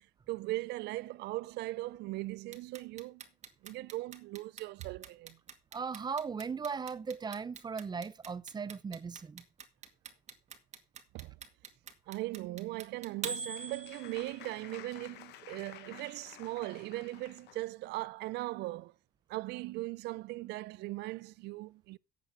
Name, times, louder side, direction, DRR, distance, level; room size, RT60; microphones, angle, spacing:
voice 1, 0.0-3.2 3.6-5.4 11.1-11.4 12.1-18.9 19.3-22.0, right 19 dB, 80° right, 0.5 m, -39 dB
Clock, 2.5-14.5, right 6 dB, 45° right, 2.1 m, -43 dB
voice 2, 5.7-9.5, right 5 dB, 25° right, 0.6 m, -38 dB
Applause, 12.8-17.7, left 14 dB, 80° left, 1.0 m, -53 dB
11.0 x 8.4 x 4.8 m
cardioid pair, 110°, 17 cm